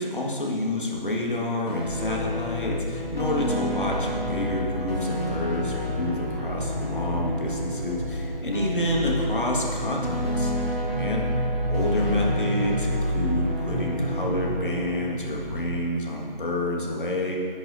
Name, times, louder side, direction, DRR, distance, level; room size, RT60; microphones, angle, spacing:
voice 1, 0.0-11.3 11.7-17.4, left 1 dB, 60° left, -1 dB, 1.7 m, -29 dB
sound 1, 1.7-15.2, left 1 dB, 90° left, 2.3 m, -32 dB
sound 2, 1.8-15.8, equal, 75° right, 0.8 m, -30 dB
10.5 x 9.1 x 2.6 m, 2.2 s
figure-of-eight pair, 165°, 29 cm